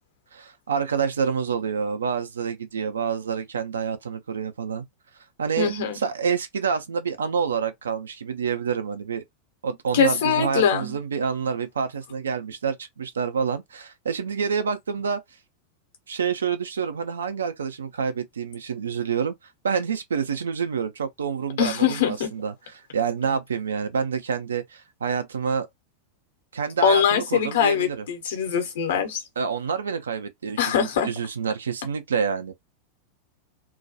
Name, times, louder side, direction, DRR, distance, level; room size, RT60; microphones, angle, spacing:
voice 1, 0.3-4.9 5.4-9.2 9.6-15.2 16.1-19.3 19.6-22.5 22.9-25.7 26.5-28.1 29.4-32.5, right 6 dB, 70° right, 0.5 m, -27 dB
voice 2, 5.6-6.0 9.9-11.0 21.6-22.3 26.8-29.2 30.6-31.1, left 7 dB, 60° left, 0.9 m, -22 dB
2.3 x 2.2 x 2.7 m
figure-of-eight pair, 90°, 0 cm